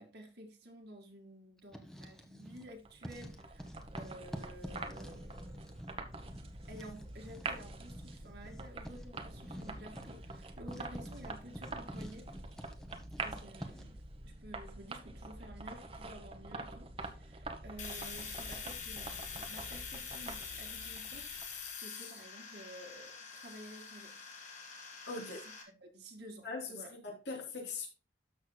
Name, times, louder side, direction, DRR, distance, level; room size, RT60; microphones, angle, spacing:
voice 1, 0.0-3.7 3.9-5.7 6.7-12.3 13.2-14.0 14.2-24.1 25.1-25.3 25.8-26.9, right 1 dB, 70° right, 2.0 m, -52 dB
Writing, 1.6-2.7 3.0-14.0, equal, 5° left, 1.0 m, -49 dB
sound 1, 2.7-21.7, right 2 dB, 35° right, 1.0 m, -46 dB
Domestic sounds home sounds, 17.8-25.6, left 6 dB, 45° left, 2.2 m, -45 dB
voice 2, 25.1-25.4 26.4-27.9, left 3 dB, 85° left, 3.2 m, -41 dB
12.5 x 6.5 x 2.2 m
head